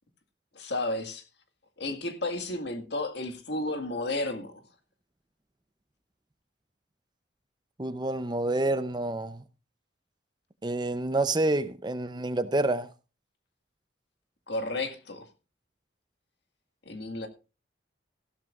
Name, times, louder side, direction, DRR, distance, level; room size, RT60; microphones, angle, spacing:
voice 1, 0.6-1.2 1.8-4.6 14.5-15.3 16.9-17.3, left 2 dB, 65° left, 1.9 m, -32 dB
voice 2, 7.8-9.4 10.6-12.9, right 2 dB, 25° right, 0.6 m, -28 dB
15.0 x 12.5 x 2.4 m
head